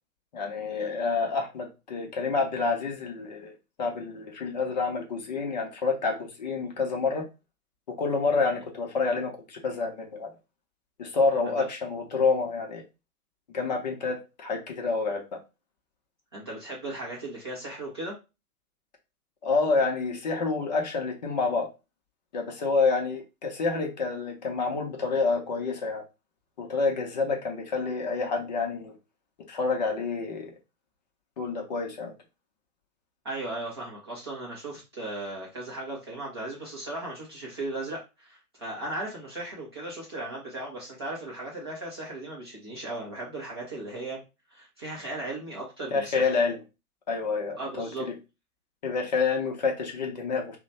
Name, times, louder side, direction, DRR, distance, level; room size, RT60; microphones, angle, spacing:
voice 1, 0.3-3.5 3.8-7.3 8.0-10.3 11.0-12.8 13.5-15.2 19.4-21.7 22.3-26.0 26.6-29.0 29.5-30.5 31.4-32.1 45.9-46.6 47.1-47.9 48.8-50.6, left 4 dB, 30° left, 2 dB, 0.6 m, -28 dB
voice 2, 16.3-18.1 33.2-44.2 44.5-46.3 47.6-48.1, right 2 dB, 20° right, -5 dB, 0.4 m, -37 dB
2.9 x 2.1 x 4.0 m, 0.28 s
figure-of-eight pair, 120°, 45 cm